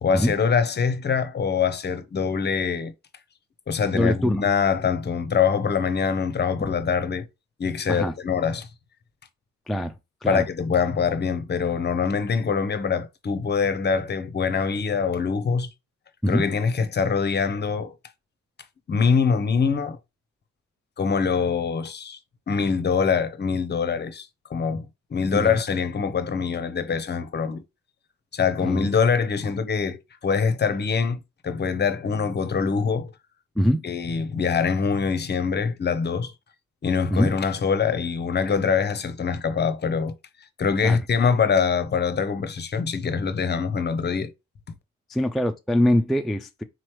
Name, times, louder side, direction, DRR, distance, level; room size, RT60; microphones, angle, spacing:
voice 1, 0.0-2.9 3.7-7.3 7.6-8.7 10.2-15.7 16.3-17.9 18.9-20.0 21.0-22.2 22.5-27.6 28.3-33.1 33.8-36.3 36.8-40.1 40.6-44.3, left 6 dB, 35° left, 0.7 m, -24 dB
voice 2, 3.9-4.4 6.6-6.7 7.9-8.1 9.7-9.9 10.2-10.4 16.2-16.4 25.3-25.6 28.6-28.9 33.6-33.8 37.1-37.3 40.8-41.0 45.1-46.6, equal, ahead, 0.3 m, -23 dB
3.9 x 3.1 x 3.1 m
cardioid pair, 90°, 30 cm